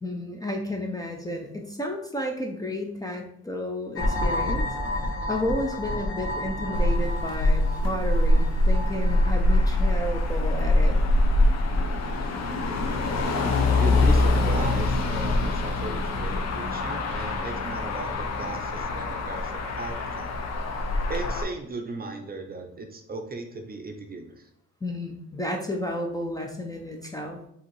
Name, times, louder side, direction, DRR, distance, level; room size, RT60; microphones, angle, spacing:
voice 1, 0.0-4.7 5.0-11.0 24.8-27.4, left 1 dB, 10° left, 2 dB, 0.5 m, -32 dB
sound 1, 3.9-10.7, left 1 dB, 40° left, 1.0 m, -31 dB
Motor vehicle (road), 6.7-21.4, left 2 dB, 60° left, 0.7 m, -24 dB
voice 2, 13.2-20.3 21.1-24.5, right 3 dB, 30° right, 4 dB, 0.6 m, -36 dB
4.8 x 2.8 x 3.1 m, 0.73 s
cardioid pair, 90°, 30 cm